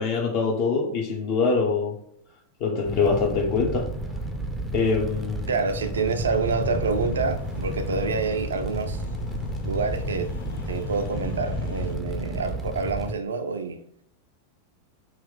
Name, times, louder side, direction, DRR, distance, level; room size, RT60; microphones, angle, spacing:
voice 1, 0.0-1.9 2.6-3.9 4.7-5.5, left 4 dB, 40° left, 0.7 m, -24 dB
Fire, 2.8-13.1, right 1 dB, 5° right, 0.5 m, -32 dB
voice 2, 5.5-9.0 9.6-10.3 10.7-13.8, right 4 dB, 70° right, 0.3 m, -27 dB
sound 1, 6.4-12.0, left 5 dB, 60° left, 0.3 m, -38 dB
2.9 x 2.4 x 3.7 m
figure-of-eight pair, 90°, 0 cm